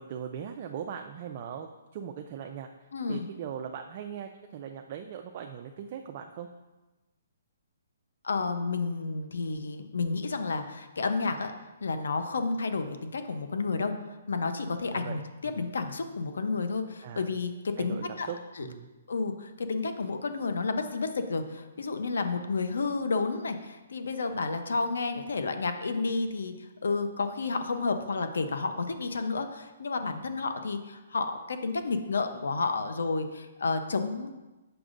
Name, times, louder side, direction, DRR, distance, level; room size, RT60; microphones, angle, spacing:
voice 1, 0.0-6.5 14.9-15.2 15.5-15.6 17.0-17.3 17.8-18.9, right 8 dB, 35° right, 4 dB, 0.4 m, -40 dB
voice 2, 2.9-3.3 8.2-11.5 11.8-13.9 14.3-18.3 18.6-18.7 19.1-34.3, left 4 dB, 85° left, 8 dB, 0.7 m, -31 dB
7.9 x 6.0 x 2.5 m, 1.1 s
hypercardioid pair, 160°, 0 cm